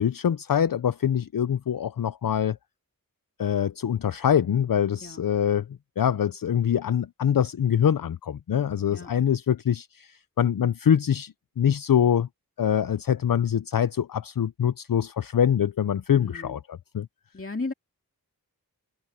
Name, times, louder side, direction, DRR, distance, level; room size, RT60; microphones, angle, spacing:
voice 1, 0.0-2.6 3.4-5.7 6.0-12.3 12.6-17.1, left 9 dB, 70° left, 0.5 m, -24 dB
voice 2, 16.2-16.6 17.3-17.7, left 3 dB, 35° left, 2.3 m, -34 dB
open air
wide cardioid pair, 55°, 35 cm